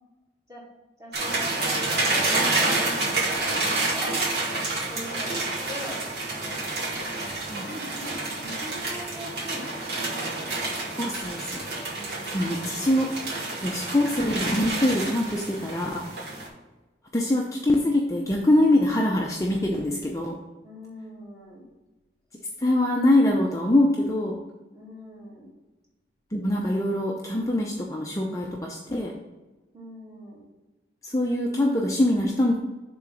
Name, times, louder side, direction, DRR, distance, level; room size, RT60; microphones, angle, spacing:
voice 1, 1.0-4.4 4.9-6.0 6.4-10.7 11.9-12.6 20.6-21.6 24.7-25.5 29.7-30.5, equal, 20° right, -6 dB, 2.5 m, -42 dB
sound 1, 1.1-16.5, right 2 dB, 60° right, 2.2 m, -29 dB
voice 2, 11.0-11.7 12.3-13.1 13.6-16.0 17.1-20.4 22.6-24.4 26.3-29.1 31.0-32.6, left 1 dB, 15° left, -1 dB, 0.6 m, -23 dB
7.2 x 3.8 x 6.1 m, 1.2 s
head